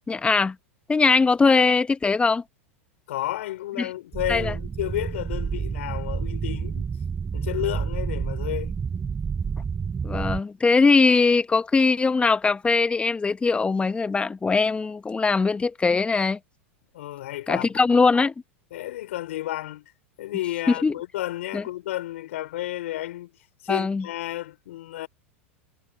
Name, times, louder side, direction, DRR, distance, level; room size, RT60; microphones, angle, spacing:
voice 1, 0.1-0.6 0.9-2.4 3.8-3.9 4.3-4.5 10.0-16.4 17.5-18.3 20.8-21.0 21.5-21.6 23.7-24.1, left 4 dB, 15° left, 1.7 m, -21 dB
voice 2, 3.1-6.9 7.3-8.7 16.9-18.0 18.7-19.9 20.2-23.3 23.6-25.1, left 15 dB, 70° left, 5.2 m, -32 dB
sound 1, 4.1-10.4, right 6 dB, 20° right, 5.7 m, -29 dB
hypercardioid pair, 100°, 7 cm